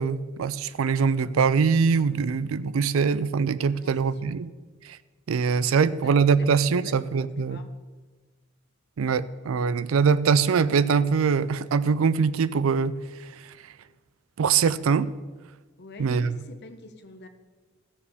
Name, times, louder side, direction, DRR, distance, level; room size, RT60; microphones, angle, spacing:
voice 1, 0.0-4.5 4.8-5.0 5.3-7.6 9.0-13.0 14.4-15.1 16.0-16.4, right 5 dB, 85° right, 16 dB, 0.4 m, -23 dB
voice 2, 5.9-7.7 15.8-17.3, left 3 dB, 55° left, 8 dB, 0.9 m, -46 dB
15.0 x 7.1 x 3.5 m, 1.3 s
head